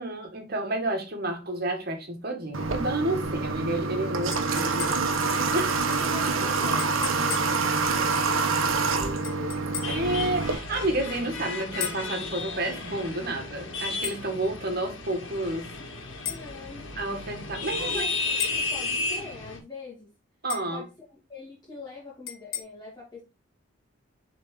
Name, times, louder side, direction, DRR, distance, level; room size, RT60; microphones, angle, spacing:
voice 1, 0.0-5.9 9.9-15.7 17.0-18.1 20.4-20.8, right 1 dB, 50° right, 1.9 m, -30 dB
Water / Water tap faucet, 2.5-10.6, right 4 dB, 90° right, 1.1 m, -26 dB
sound 1, 4.3-5.2 6.8-7.6 9.2-10.1 11.8-12.1 14.0-14.2 16.2-16.5 18.4-18.7 20.5-20.8 22.3-22.6, left 9 dB, 85° left, 1.6 m, -35 dB
voice 2, 5.9-9.6 16.2-16.9 17.8-20.1 20.7-23.2, left 4 dB, 20° left, 2.5 m, -43 dB
sound 2, 9.8-19.6, left 3 dB, 65° left, 2.0 m, -33 dB
7.4 x 4.2 x 3.8 m
head